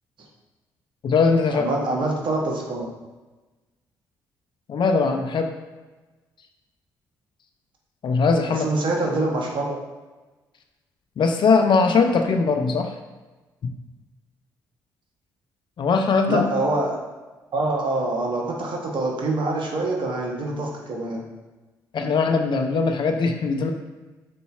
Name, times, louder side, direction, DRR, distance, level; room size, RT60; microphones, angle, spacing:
voice 1, 1.0-1.6 4.7-5.5 8.0-8.6 11.2-12.9 15.8-16.4 21.9-23.7, left 4 dB, 55° left, 5 dB, 0.5 m, -20 dB
voice 2, 1.5-2.9 8.5-9.8 16.3-17.0 17.5-21.2, right 2 dB, 55° right, 0 dB, 1.1 m, -25 dB
5.3 x 3.9 x 2.4 m, 1.2 s
hypercardioid pair, 50°, 10 cm